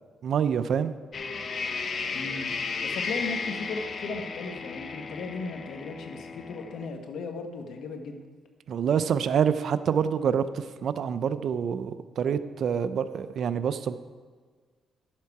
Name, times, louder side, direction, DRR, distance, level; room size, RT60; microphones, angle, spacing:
voice 1, 0.2-0.9 8.7-14.0, right 7 dB, 60° right, 13 dB, 0.5 m, -26 dB
sound 1, 1.1-6.9, left 4 dB, 45° left, 0.8 m, -34 dB
voice 2, 2.1-2.5 2.8-8.2, left 4 dB, 70° left, 5 dB, 1.3 m, -36 dB
11.5 x 7.4 x 4.8 m, 1.5 s
cardioid pair, 90°, 0 cm